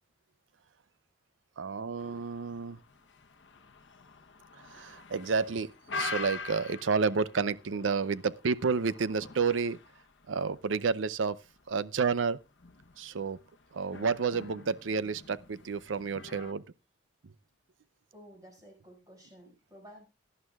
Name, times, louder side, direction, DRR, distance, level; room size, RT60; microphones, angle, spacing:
voice 1, 1.6-2.8 4.5-9.8 10.3-11.4 11.7-12.4 13.0-13.4 13.7-16.6, right 5 dB, 85° right, 0.6 m, -30 dB
sound 1, 2.0-16.5, left 4 dB, 70° left, 1.0 m, -45 dB
voice 2, 18.1-20.0, equal, 20° right, 5.5 m, -53 dB
18.0 x 11.0 x 2.4 m
head